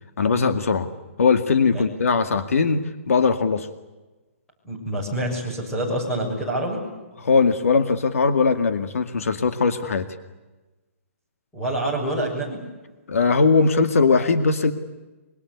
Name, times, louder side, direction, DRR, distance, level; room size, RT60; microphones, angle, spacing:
voice 1, 0.2-0.9 1.2-3.7 7.2-10.1 13.1-14.7, left 4 dB, 80° left, 9 dB, 2.1 m, -20 dB
voice 2, 4.6-6.8 11.5-12.6, right 1 dB, 5° left, -3 dB, 6.6 m, -26 dB
25.5 x 24.0 x 8.4 m, 1.1 s
hypercardioid pair, 175°, 8 cm